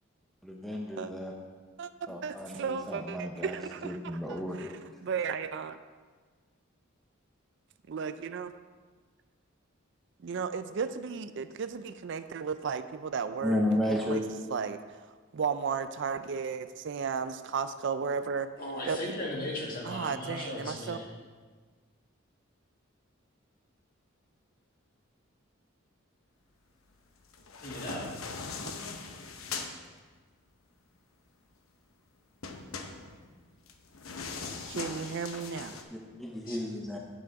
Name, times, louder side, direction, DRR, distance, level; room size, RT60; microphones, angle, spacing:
voice 1, 0.4-1.3 2.1-4.8 13.4-14.2 35.9-37.0, left 1 dB, ahead, -1 dB, 0.7 m, -33 dB
voice 2, 1.8-4.0 4.3-4.7 5.0-5.8 7.9-8.5 10.2-14.2 14.5-14.8 15.3-18.5 18.9-19.1 19.8-21.0 34.7-35.8, right 6 dB, 60° right, 11 dB, 0.4 m, -34 dB
voice 3, 18.6-21.1 27.6-28.1 36.4-36.6, left 1 dB, 45° left, -3 dB, 2.1 m, -37 dB
sound 1, 27.3-29.7 32.4-35.8, left 4 dB, 85° left, 0.9 m, -40 dB
9.0 x 7.5 x 4.7 m, 1.5 s
head